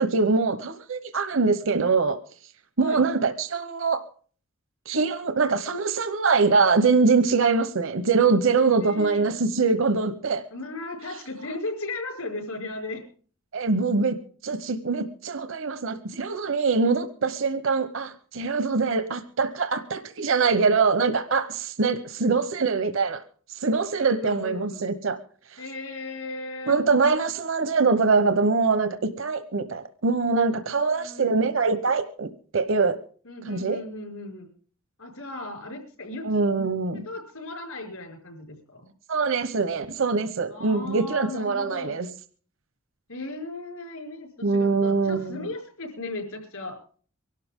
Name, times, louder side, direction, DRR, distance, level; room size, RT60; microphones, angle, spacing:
voice 1, 0.0-2.2 2.8-4.0 4.9-10.4 13.5-14.1 14.4-23.2 23.5-25.2 25.5-25.6 26.7-32.3 32.5-33.0 33.5-33.8 36.2-37.1 39.1-42.1 44.4-45.5, right 4 dB, 65° right, 10 dB, 0.9 m, -23 dB
voice 2, 8.8-9.3 10.5-13.0 18.7-18.9 24.0-24.9 25.6-26.8 30.9-31.5 33.3-34.5 35.0-36.3 37.1-38.9 40.5-41.9 43.1-46.8, left 2 dB, 85° left, 2 dB, 5.2 m, -36 dB
23.5 x 12.5 x 3.7 m, 0.43 s
head